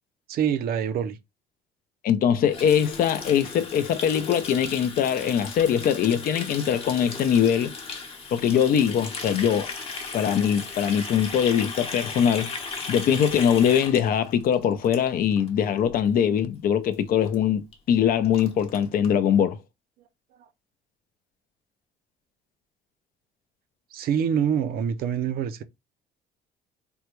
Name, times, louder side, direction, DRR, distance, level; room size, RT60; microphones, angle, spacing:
voice 1, 0.3-1.2 20.4-20.5 23.9-25.6, right 8 dB, 65° right, 0.5 m, -25 dB
voice 2, 2.0-7.7 8.3-9.7 10.1-19.6, left 8 dB, 60° left, 0.5 m, -22 dB
Water tap faucet, 2.5-15.5 15.8-16.0 16.3-16.7 16.9-17.0 17.3-17.4 17.7-17.8 18.0-19.1, left 4 dB, 35° left, 0.9 m, -36 dB
3.4 x 2.2 x 3.0 m
cardioid pair, 110°, 17 cm